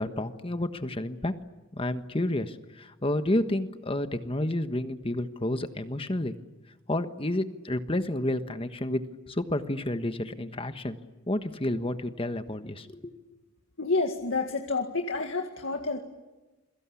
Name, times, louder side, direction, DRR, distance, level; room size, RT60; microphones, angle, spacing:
voice 1, 0.0-1.3 1.7-6.3 6.9-9.0 9.3-11.0 11.3-13.1, left 1 dB, 25° left, 9 dB, 1.4 m, -30 dB
voice 2, 13.8-16.0, left 3 dB, 75° left, 4 dB, 2.1 m, -29 dB
28.5 x 23.0 x 8.5 m, 1.1 s
head